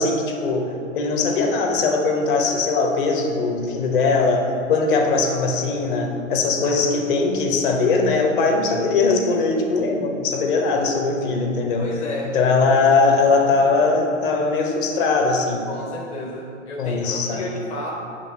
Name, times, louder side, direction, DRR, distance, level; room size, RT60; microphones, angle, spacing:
voice 1, 0.0-11.9 12.3-15.7 16.8-17.4, left 3 dB, 40° left, 3 dB, 1.0 m, -20 dB
voice 2, 10.4-10.9 11.8-12.4 12.6-12.8 13.2-13.7 15.7-17.9, left 2 dB, 20° left, -2 dB, 0.6 m, -33 dB
8.1 x 3.5 x 6.3 m, 2.5 s
figure-of-eight pair, 105°, 39 cm